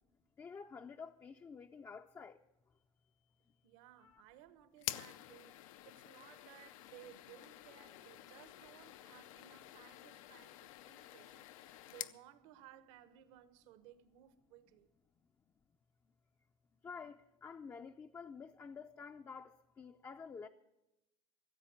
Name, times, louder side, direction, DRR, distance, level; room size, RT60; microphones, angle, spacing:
voice 1, 0.4-2.4 4.0-4.2 16.8-20.5, left 5 dB, 15° left, 0.4 m, -50 dB
voice 2, 3.6-14.9, right 12 dB, 75° right, 1.2 m, -60 dB
sound 1, 4.8-12.2, left 14 dB, 85° left, 0.6 m, -49 dB
15.0 x 7.8 x 8.8 m
supercardioid pair, 135°, 17 cm